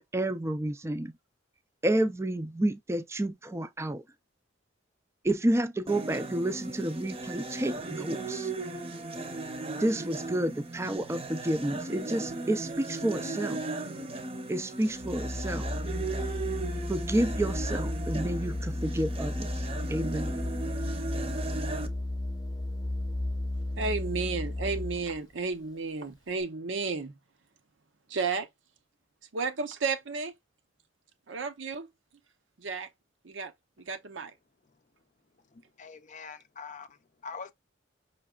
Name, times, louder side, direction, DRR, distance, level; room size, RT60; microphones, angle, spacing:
voice 1, 0.1-1.1 1.8-4.0 5.2-8.5 9.8-13.6 14.5-15.7 16.9-19.5 19.9-20.4, right 1 dB, 15° right, 0.4 m, -30 dB
sound 1, 5.9-21.9, right 3 dB, 30° right, 0.8 m, -37 dB
Organ, 14.9-25.2, left 1 dB, 20° left, 0.9 m, -34 dB
voice 2, 23.8-27.2 28.1-28.5 29.3-30.3 31.3-31.9 32.6-32.9 33.2-33.5 33.8-34.3, right 4 dB, 75° right, 0.8 m, -32 dB
voice 3, 35.5-37.5, left 5 dB, 40° left, 0.5 m, -44 dB
5.8 x 3.1 x 2.4 m
head